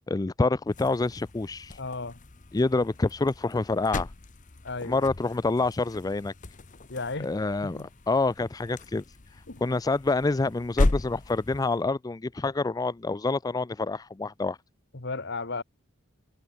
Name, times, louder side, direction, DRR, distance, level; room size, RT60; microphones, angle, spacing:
voice 1, 0.0-1.8 2.5-4.1 4.8-6.3 7.2-9.0 9.6-14.6, left 3 dB, 20° left, 0.4 m, -27 dB
sound 1, 0.7-11.8, left 2 dB, 40° left, 1.0 m, -35 dB
voice 2, 1.8-2.2 4.6-5.1 6.9-7.3 7.6-7.9 9.5-9.6 14.9-15.6, left 3 dB, 55° left, 2.0 m, -34 dB
head